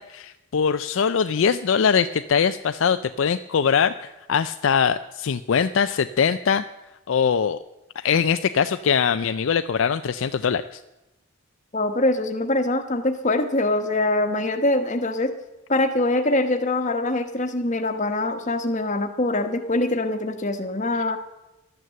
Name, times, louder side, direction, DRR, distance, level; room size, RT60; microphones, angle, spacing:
voice 1, 0.0-6.6 7.1-7.6 8.0-10.8, left 6 dB, 60° left, 11 dB, 0.4 m, -22 dB
voice 2, 11.7-15.3 15.7-21.2, left 2 dB, 35° left, 7 dB, 1.1 m, -23 dB
12.0 x 9.4 x 7.6 m, 0.98 s
head